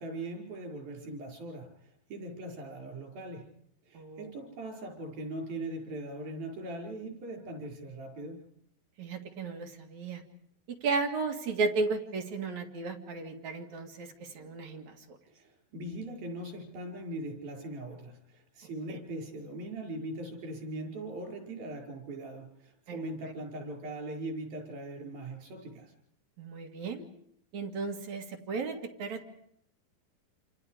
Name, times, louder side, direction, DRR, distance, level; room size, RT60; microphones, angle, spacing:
voice 1, 0.0-3.5 3.9-8.5 15.3-25.9, right 1 dB, 90° right, 1 dB, 7.4 m, -40 dB
voice 2, 3.9-4.3 9.0-10.2 10.8-15.2 18.9-19.0 22.9-23.0 23.2-23.3 26.4-27.0 27.5-29.3, right 4 dB, 55° right, 3 dB, 3.3 m, -34 dB
28.5 x 27.5 x 5.0 m, 0.71 s
omnidirectional pair, 4.1 m